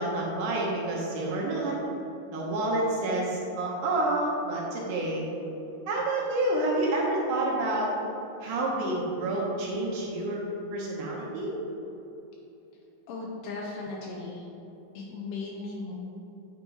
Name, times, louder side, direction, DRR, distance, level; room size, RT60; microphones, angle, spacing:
voice 1, 0.0-1.8 2.3-5.3 5.9-7.9 8.4-10.4 10.7-11.6, right 2 dB, 75° right, -3 dB, 2.2 m, -28 dB
voice 2, 13.1-14.5 14.9-15.9, left 3 dB, 80° left, -2 dB, 2.0 m, -37 dB
8.6 x 2.9 x 4.6 m, 2.9 s
omnidirectional pair, 4.1 m